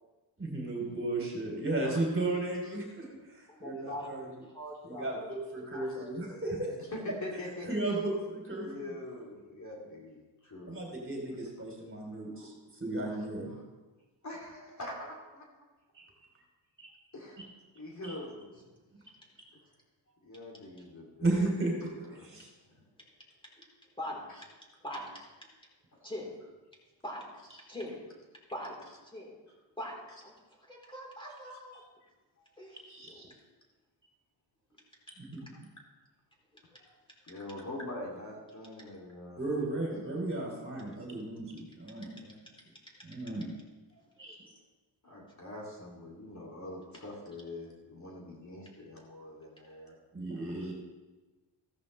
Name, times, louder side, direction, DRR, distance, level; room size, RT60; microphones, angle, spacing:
voice 1, 0.4-4.3 4.8-6.7 7.7-8.9 10.6-13.5 15.9-16.0 16.8-16.9 17.4-17.5 18.0-18.1 21.2-21.7 22.2-22.5 32.9-33.3 35.2-35.4 39.4-42.3 43.0-43.5 44.2-44.4 50.1-50.7, right 2 dB, 25° right, -1 dB, 3.1 m, -34 dB
voice 2, 3.5-4.1 4.4-5.1 5.5-6.8 24.0-24.2 24.8-25.1 26.0-26.3 27.0-27.3 27.7-28.0 28.5-28.8 29.1-29.4 29.8-31.8 32.6-32.8 33.0-33.2 36.7-36.9 43.2-43.3 43.9-44.4, equal, 10° left, -2 dB, 3.8 m, -42 dB
voice 3, 6.9-7.7 8.6-10.8 12.1-12.5 13.0-13.6 14.2-15.6 17.1-17.4 17.7-18.5 20.2-21.5 21.8-22.3 22.8-22.9 25.9-26.1 32.4-32.5 37.2-39.5 45.0-49.9 50.4-50.7, left 1 dB, 40° left, -3 dB, 2.8 m, -44 dB
15.0 x 13.5 x 3.3 m, 1.2 s
cardioid pair, 120°, 46 cm